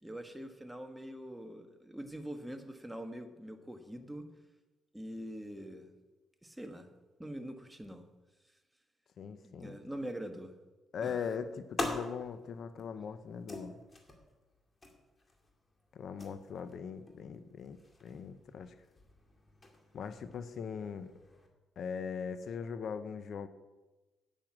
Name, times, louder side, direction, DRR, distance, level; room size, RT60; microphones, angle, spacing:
voice 1, 0.0-4.3 4.9-5.9 6.4-6.9 7.2-8.0 9.4-10.6 11.0-11.3, right 1 dB, 5° right, 6 dB, 1.2 m, -44 dB
voice 2, 9.2-9.8 10.9-13.8 15.9-18.7 19.9-21.1 21.8-23.5, left 6 dB, 60° left, 11 dB, 0.7 m, -40 dB
sound 1, 11.4-21.5, left 1 dB, 25° left, 2.3 m, -46 dB
9.3 x 8.8 x 6.1 m, 1.1 s
cardioid pair, 90°, 0 cm